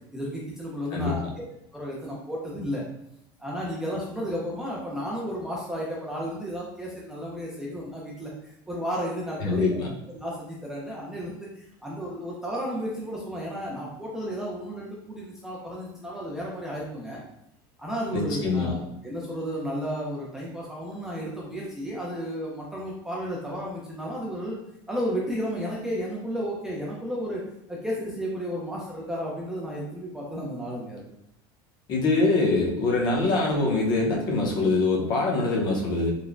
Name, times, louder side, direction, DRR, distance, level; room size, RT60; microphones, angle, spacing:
voice 1, 0.1-1.2 1.7-2.8 3.4-9.8 10.1-17.2 17.8-24.6 24.9-31.1, equal, 5° right, -5 dB, 0.3 m, -33 dB
voice 2, 9.4-9.9 18.1-18.8 31.9-36.1, left 3 dB, 35° left, -1 dB, 0.6 m, -24 dB
3.1 x 2.0 x 2.4 m, 0.79 s
cardioid pair, 160°, 12 cm